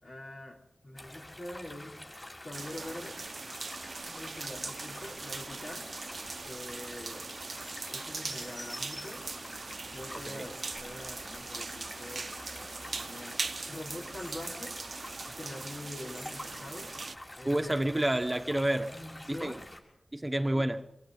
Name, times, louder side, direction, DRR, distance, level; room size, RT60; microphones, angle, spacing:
voice 1, 0.0-2.0 2.4-3.2 4.1-5.9 6.4-7.3 7.9-9.2 9.9-12.3 13.0-14.8 15.4-16.9 17.4-17.8 18.9-19.6 20.5-20.6, left 1 dB, 70° left, 4.7 m, -44 dB
sound 1, 1.0-19.8, left 1 dB, 25° left, 6.4 m, -47 dB
sound 2, 2.5-17.1, right 3 dB, 60° right, 0.7 m, -41 dB
voice 2, 17.4-18.9 19.3-19.6 20.1-20.8, right 1 dB, 15° right, 1.1 m, -29 dB
25.5 x 24.0 x 5.3 m
wide cardioid pair, 100°, 0 cm